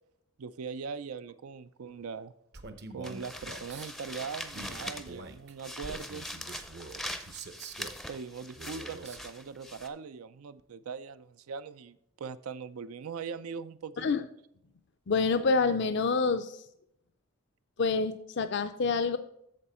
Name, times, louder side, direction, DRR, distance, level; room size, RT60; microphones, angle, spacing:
voice 1, 0.4-2.3 2.9-6.3 8.1-14.2, right 5 dB, 85° right, 13 dB, 0.5 m, -41 dB
Male speech man speaking, 2.5-3.9 4.5-8.0 8.5-9.3, right 3 dB, 50° right, 0.8 m, -45 dB
sound 1, 3.0-5.3 5.6-9.9, left 1 dB, ahead, 0.5 m, -42 dB
voice 2, 15.1-16.6 17.8-19.2, left 4 dB, 50° left, 10 dB, 0.4 m, -27 dB
8.6 x 6.8 x 4.3 m, 0.74 s
head